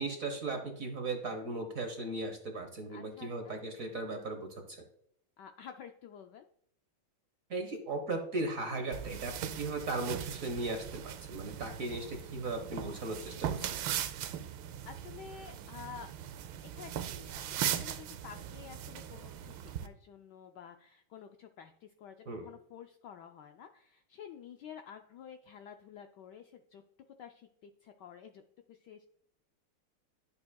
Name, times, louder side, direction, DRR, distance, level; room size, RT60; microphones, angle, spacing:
voice 1, 0.0-4.8 7.5-13.9 22.3-22.5, right 2 dB, 50° right, 5 dB, 1.1 m, -37 dB
voice 2, 2.9-3.5 5.4-6.4 14.9-16.1 16.7-26.8 27.2-28.4 28.7-29.1, left 8 dB, 80° left, 6 dB, 1.0 m, -50 dB
sound 1, 8.9-19.9, right 10 dB, 75° right, 1.3 m, -39 dB
11.0 x 6.9 x 2.3 m, 0.71 s
omnidirectional pair, 2.3 m